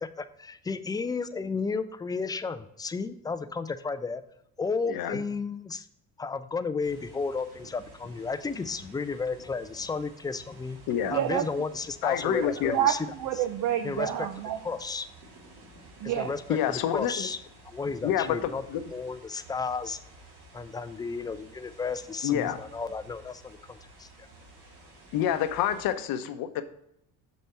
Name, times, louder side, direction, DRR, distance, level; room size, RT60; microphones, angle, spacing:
voice 1, 0.0-4.2 4.6-5.9 6.2-10.8 11.1-13.0 13.8-14.1 14.6-15.1 16.2-17.4 17.6-18.6 18.9-20.0 20.5-24.1, left 4 dB, 10° left, 12 dB, 0.4 m, -33 dB
voice 2, 4.9-5.2 10.9-11.1 12.0-12.7 16.5-17.3 18.0-18.8 22.2-22.6 25.1-26.6, left 10 dB, 70° left, 10 dB, 0.8 m, -28 dB
sound 1, 6.8-25.9, right 1 dB, 90° right, 2.2 m, -52 dB
voice 3, 11.1-11.6 12.6-14.6 16.0-16.3, right 11 dB, 55° right, 8 dB, 0.6 m, -28 dB
6.8 x 4.3 x 4.4 m, 0.78 s
cardioid pair, 95°, 36 cm